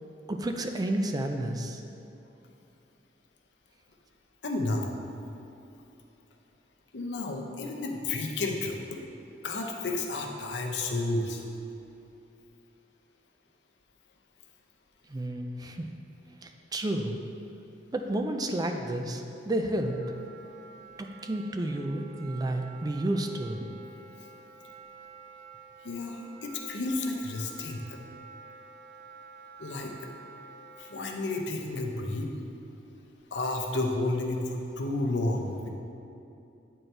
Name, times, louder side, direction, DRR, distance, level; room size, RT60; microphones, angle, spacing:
voice 1, 0.3-1.8 15.1-15.8 16.4-17.2 17.9-19.9 21.0-23.7, right 1 dB, 20° right, 4 dB, 0.4 m, -31 dB
voice 2, 4.4-5.0 6.9-9.0 9.4-11.5 24.2-24.3 25.8-28.0 29.6-30.1 30.8-32.3 33.3-35.7, left 2 dB, 75° left, 2 dB, 0.7 m, -31 dB
Wind instrument woodwind instrument, 19.8-31.1, right 5 dB, 50° right, 0.9 m, -50 dB
9.0 x 4.4 x 3.3 m, 2.7 s
head